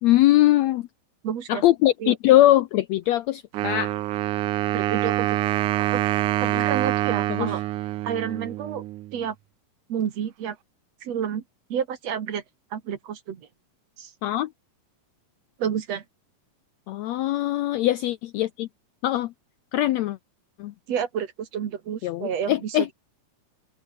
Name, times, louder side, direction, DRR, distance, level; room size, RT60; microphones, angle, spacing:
voice 1, 0.0-0.9 1.5-3.9 6.4-6.6 7.3-7.5 14.2-14.5 16.9-18.7 19.0-19.3 19.7-20.2 20.6-20.7 22.0-22.9, left 15 dB, 90° left, 1.5 m, -21 dB
voice 2, 1.2-1.6 2.0-2.2 4.7-5.3 5.7-6.0 6.5-7.6 8.0-8.9 9.1-9.4 9.9-10.6 11.0-11.4 11.7-12.4 12.7-13.5 14.0-14.1 15.6-16.0 20.9-22.8, right 8 dB, 55° right, 2.6 m, -29 dB
Wind instrument woodwind instrument, 3.5-9.2, right 15 dB, 70° right, 2.2 m, -26 dB
omnidirectional pair, 3.9 m